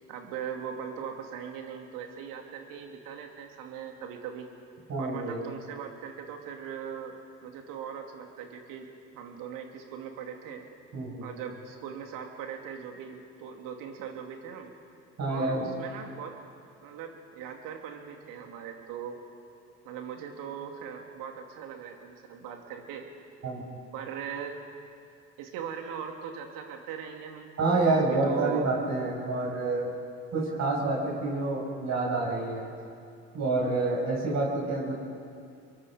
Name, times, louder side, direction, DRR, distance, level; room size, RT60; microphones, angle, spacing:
voice 1, 0.1-4.5 5.0-7.2 7.4-8.9 9.1-10.7 11.2-14.7 15.3-16.4 16.8-19.2 19.8-23.1 23.9-24.6 25.4-27.5 27.8-28.7, right 7 dB, 70° right, 3 dB, 2.8 m, -40 dB
voice 2, 4.9-5.4 10.9-11.3 15.2-15.7 23.4-23.6 27.6-29.9 30.3-32.6 33.3-34.9, right 3 dB, 50° right, -3 dB, 6.5 m, -28 dB
25.5 x 22.5 x 5.2 m, 2.5 s
hypercardioid pair, 65°, 34 cm